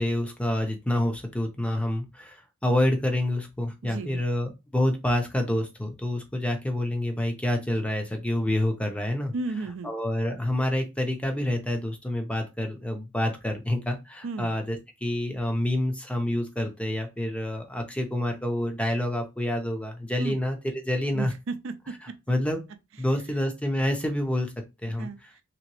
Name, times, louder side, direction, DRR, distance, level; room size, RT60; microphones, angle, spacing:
voice 1, 0.0-9.3 9.8-21.3 22.0-22.6 23.0-24.5 24.8-25.1, left 1 dB, 5° left, 0.6 m, -28 dB
voice 2, 3.8-4.2 9.3-9.9 14.2-14.5 20.2-20.4 21.1-22.2 24.9-25.2, right 3 dB, 65° right, 0.4 m, -34 dB
3.0 x 2.9 x 3.0 m
head